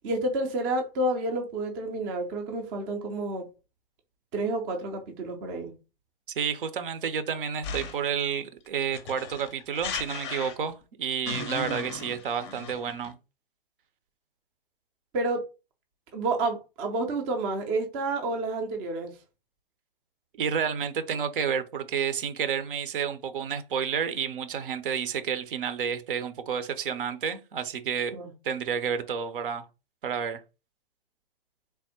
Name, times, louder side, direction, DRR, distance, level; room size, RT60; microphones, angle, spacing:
voice 1, 0.0-3.5 4.3-5.7 15.1-15.4 16.1-19.2 28.1-28.3, right 2 dB, 20° right, 0.5 m, -29 dB
voice 2, 6.3-13.2 20.4-29.7 30.0-30.4, right 7 dB, 65° right, 0.7 m, -30 dB
sound 1, 7.6-8.1 8.9-10.8 11.3-13.1, left 5 dB, 30° left, 0.5 m, -36 dB
3.4 x 2.1 x 4.2 m
hypercardioid pair, 140°, 29 cm